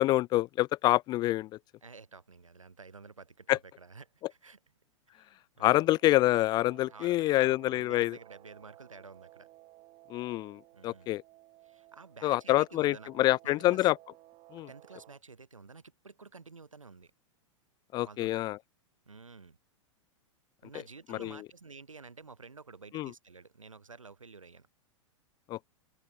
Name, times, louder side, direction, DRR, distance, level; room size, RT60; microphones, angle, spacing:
voice 1, 0.0-1.5 3.5-3.6 5.6-8.2 10.1-11.2 12.2-14.0 14.5-14.7 17.9-18.6 21.1-21.4 22.9-23.1 25.5-25.7, left 16 dB, 25° left, 0.3 m, -26 dB
voice 2, 1.8-4.6 5.1-5.9 6.9-9.5 10.7-11.1 11.6-13.9 14.7-17.1 18.0-18.4 19.1-19.6 20.6-24.7, right 4 dB, 85° right, 3.5 m, -51 dB
Guitar, 5.7-15.2, right 18 dB, 35° right, 5.1 m, -57 dB
figure-of-eight pair, 100°, 16 cm